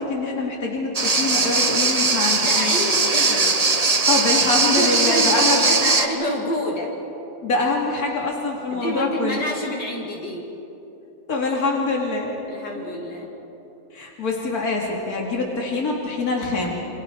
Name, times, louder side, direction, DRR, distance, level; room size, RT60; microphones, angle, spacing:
voice 1, 0.0-2.9 4.1-5.6 7.4-9.4 11.3-12.3 12.7-13.1 13.9-16.9, left 3 dB, 55° left, -1 dB, 3.1 m, -25 dB
sound 1, 1.0-6.1, right 3 dB, 30° right, 0.9 m, -20 dB
voice 2, 2.4-3.6 4.6-6.9 8.7-10.5 12.5-13.3, left 1 dB, 75° left, -1 dB, 3.4 m, -28 dB
28.0 x 27.0 x 4.7 m, 3.0 s
omnidirectional pair, 1.9 m